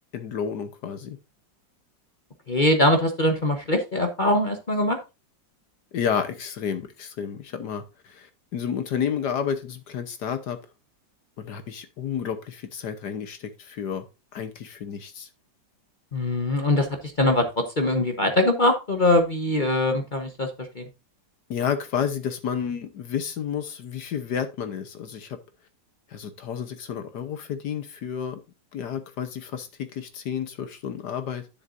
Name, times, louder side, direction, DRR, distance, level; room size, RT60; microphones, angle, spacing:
voice 1, 0.1-1.2 5.9-10.6 11.4-14.0 14.3-15.3 21.5-25.4 26.1-28.4 28.7-31.4, left 8 dB, 65° left, 1.5 m, -31 dB
voice 2, 2.5-5.0 16.1-16.9 17.2-20.5 20.8-20.9, left 1 dB, 35° left, 0.9 m, -22 dB
10.5 x 7.2 x 2.5 m
omnidirectional pair, 2.0 m